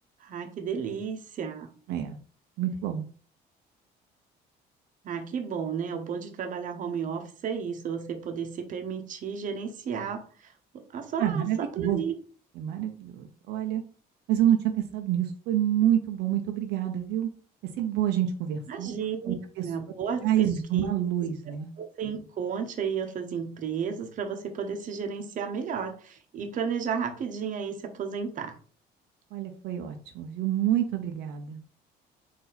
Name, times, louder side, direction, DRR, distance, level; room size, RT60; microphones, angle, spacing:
voice 1, 0.2-1.7 5.0-11.5 11.7-12.1 18.7-19.4 19.6-20.9 21.8-28.6, right 6 dB, 50° right, 5 dB, 0.9 m, -33 dB
voice 2, 2.6-3.1 11.2-12.0 12.6-13.8 14.3-17.3 17.8-18.9 19.2-19.7 20.2-21.7 29.3-31.7, right 11 dB, 85° right, 4 dB, 0.7 m, -27 dB
4.2 x 2.7 x 3.9 m, 0.41 s
cardioid pair, 110°, 17 cm